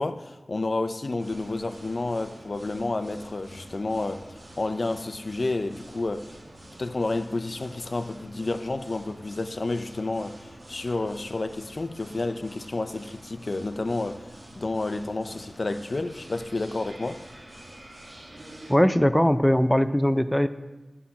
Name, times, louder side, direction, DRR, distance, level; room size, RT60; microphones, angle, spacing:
voice 1, 0.0-6.3 6.8-17.2, left 2 dB, 55° left, 0.5 m, -30 dB
sound 1, 1.2-18.8, right 1 dB, 55° right, 1.4 m, -47 dB
voice 2, 18.7-20.5, equal, 5° left, 0.4 m, -20 dB
13.0 x 5.8 x 4.1 m
wide cardioid pair, 80°, 0 cm